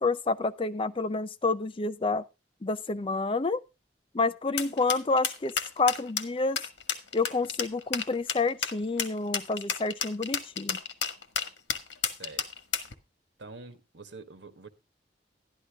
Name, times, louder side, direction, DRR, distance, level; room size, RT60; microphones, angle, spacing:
voice 1, 0.0-2.2 2.6-3.6 4.1-6.6 7.1-10.8, left 3 dB, 30° left, 0.5 m, -29 dB
sound 1, 4.6-12.9, left 7 dB, 85° left, 1.4 m, -31 dB
voice 2, 13.4-14.7, right 3 dB, 90° right, 1.4 m, -46 dB
12.0 x 11.0 x 3.5 m
head